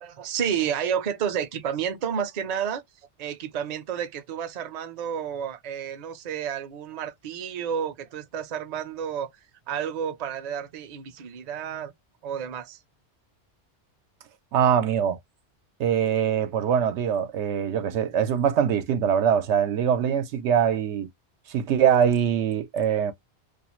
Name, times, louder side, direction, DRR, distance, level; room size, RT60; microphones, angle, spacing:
voice 1, 0.0-2.8 3.2-9.3 9.7-11.9 12.2-12.8, right 8 dB, 50° right, 0.5 m, -30 dB
voice 2, 14.5-15.2 15.8-21.1 21.5-23.1, right 8 dB, 90° right, 0.9 m, -23 dB
2.4 x 2.4 x 2.9 m
omnidirectional pair, 1.1 m